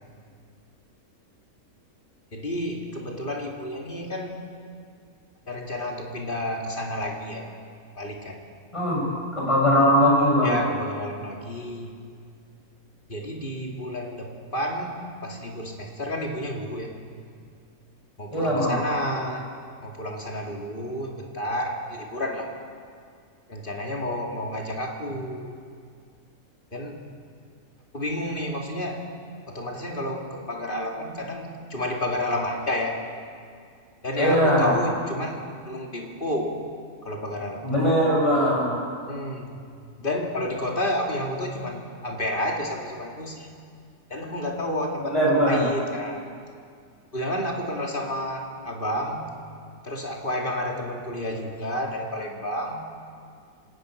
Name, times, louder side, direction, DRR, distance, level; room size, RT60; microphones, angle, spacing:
voice 1, 2.3-4.4 5.5-7.5 8.0-8.4 10.4-12.0 13.1-16.9 18.2-19.4 19.8-22.5 23.5-25.6 26.7-27.0 27.9-29.0 29.5-33.0 34.0-36.5 37.0-37.7 39.1-39.6 40.0-43.5 44.1-45.1 45.4-46.3 47.1-49.3 49.8-52.9, left 1 dB, 35° left, 0 dB, 2.9 m, -30 dB
voice 2, 8.7-9.0 9.3-10.5 18.3-18.8 34.2-34.7 37.6-38.7 45.0-45.7, equal, 20° left, -5 dB, 7.7 m, -20 dB
25.5 x 19.0 x 6.6 m, 2.2 s
omnidirectional pair, 1.6 m